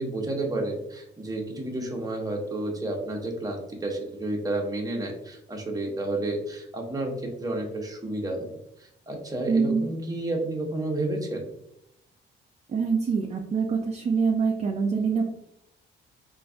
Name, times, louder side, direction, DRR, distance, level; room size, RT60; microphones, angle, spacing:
voice 1, 0.0-11.5, right 2 dB, 20° right, 1 dB, 0.8 m, -31 dB
voice 2, 9.5-9.8 12.7-15.2, right 5 dB, 35° right, 1 dB, 0.5 m, -25 dB
3.8 x 2.6 x 2.4 m, 0.80 s
cardioid pair, 90°, 20 cm